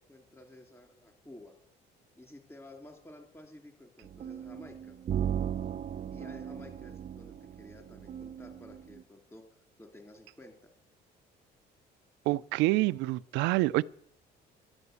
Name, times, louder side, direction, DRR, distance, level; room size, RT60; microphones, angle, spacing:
voice 1, 0.0-1.6 2.2-5.0 6.1-9.4 9.8-10.7, left 1 dB, 15° left, 3.7 m, -52 dB
sound 1, 4.0-9.0, right 9 dB, 45° right, 0.7 m, -37 dB
voice 2, 12.3-13.8, right 20 dB, 85° right, 0.5 m, -27 dB
12.5 x 9.8 x 8.2 m
supercardioid pair, 85°, 18 cm